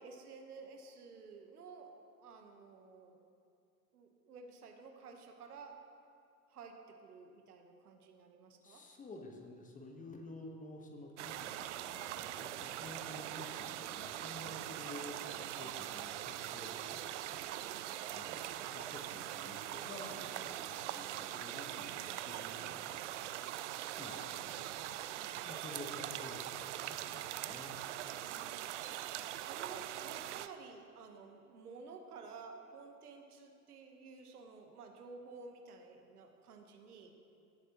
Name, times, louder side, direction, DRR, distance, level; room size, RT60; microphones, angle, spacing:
voice 1, 0.0-3.2 3.9-5.8 6.5-8.8 17.7-17.9 25.1-25.4 28.1-28.6 29.3-37.1, right 4 dB, 70° right, 4 dB, 1.2 m, -53 dB
voice 2, 8.6-23.1 24.0-27.8, left 2 dB, 15° left, 2 dB, 1.2 m, -51 dB
sound 1, 11.2-30.5, right 13 dB, 50° right, 0.5 m, -42 dB
17.0 x 8.0 x 3.0 m, 2.6 s
figure-of-eight pair, 90°, 47 cm